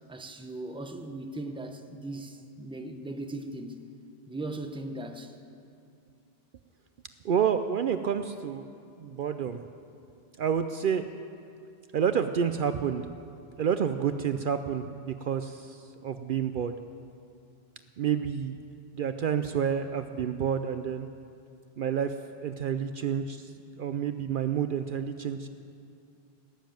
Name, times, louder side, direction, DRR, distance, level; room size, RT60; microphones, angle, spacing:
voice 1, 0.1-3.8 4.3-5.4, right 2 dB, 5° right, 5 dB, 0.7 m, -38 dB
voice 2, 7.2-8.7 9.0-9.6 10.4-11.1 11.9-13.1 13.6-16.8 18.0-18.6 18.9-21.1 21.8-22.2 22.4-25.5, right 8 dB, 60° right, 9 dB, 0.7 m, -29 dB
18.5 x 7.4 x 9.0 m, 2.5 s
omnidirectional pair, 1.1 m